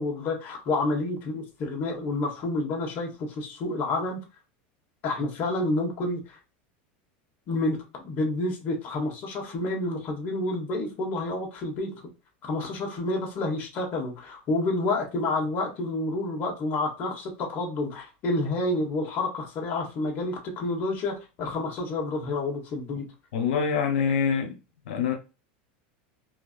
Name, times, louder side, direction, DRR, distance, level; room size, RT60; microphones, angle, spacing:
voice 1, 0.0-4.2 5.0-6.4 7.5-11.9 12.4-23.0, left 2 dB, 35° left, 1.4 m, -29 dB
voice 2, 23.3-24.6 24.9-25.1, left 6 dB, 85° left, 0.9 m, -25 dB
4.4 x 2.7 x 2.5 m
supercardioid pair, 150°, 5 cm